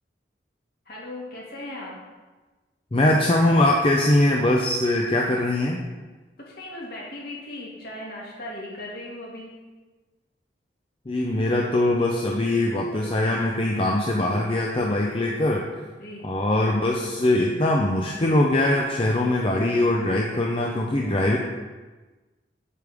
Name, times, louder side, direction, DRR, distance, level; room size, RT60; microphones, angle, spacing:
voice 1, 0.9-1.9 6.4-9.5 16.0-16.3, left 1 dB, 55° left, -4 dB, 2.2 m, -37 dB
voice 2, 2.9-5.8 11.1-15.7 16.2-21.4, left 1 dB, 30° left, -1 dB, 0.6 m, -22 dB
8.3 x 6.7 x 3.5 m, 1.2 s
head